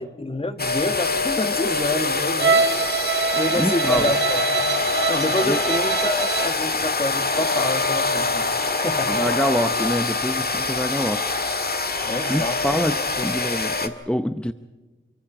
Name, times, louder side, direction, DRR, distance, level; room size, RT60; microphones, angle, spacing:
voice 1, 0.0-8.6 8.8-9.1 12.0-12.6 13.0-13.2, left 2 dB, 30° left, 1.6 m, -28 dB
sound 1, 0.6-13.9, left 3 dB, 50° left, 1.8 m, -24 dB
Bowed string instrument, 2.4-6.6, right 5 dB, 60° right, 1.5 m, -24 dB
voice 2, 3.6-4.1 5.5-5.6 9.1-11.2 12.3-14.5, equal, 5° left, 0.7 m, -25 dB
27.5 x 23.5 x 5.0 m
wide cardioid pair, 105°, 21 cm